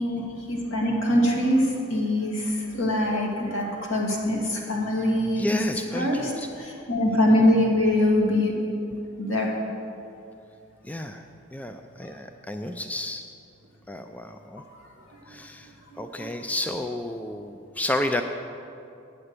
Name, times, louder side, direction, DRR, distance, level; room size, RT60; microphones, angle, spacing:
voice 1, 0.0-5.6 5.9-8.5 9.2-9.5 15.3-15.4 15.9-16.3, left 1 dB, 75° left, -2 dB, 2.2 m, -24 dB
voice 2, 5.4-6.5 10.8-11.2 11.5-13.2 13.9-14.6 15.3-18.2, left 1 dB, 5° left, 6 dB, 0.3 m, -31 dB
8.7 x 7.8 x 8.1 m, 2.6 s
head